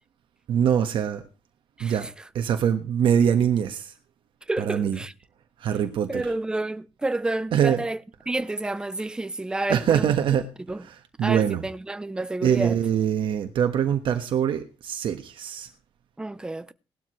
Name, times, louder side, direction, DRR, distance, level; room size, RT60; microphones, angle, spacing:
voice 1, 0.5-1.2 1.8-2.1 2.3-3.9 4.6-5.0 5.6-6.3 7.5-7.8 9.7-10.5 10.8-11.6 12.4-15.7, right 8 dB, 65° right, 1.3 m, -23 dB
voice 2, 4.5-5.1 6.1-8.0 8.3-10.1 10.7-10.8 11.2-12.8 16.2-16.7, right 2 dB, 10° right, 0.5 m, -29 dB
18.5 x 12.5 x 3.1 m
cardioid pair, 170°, 9 cm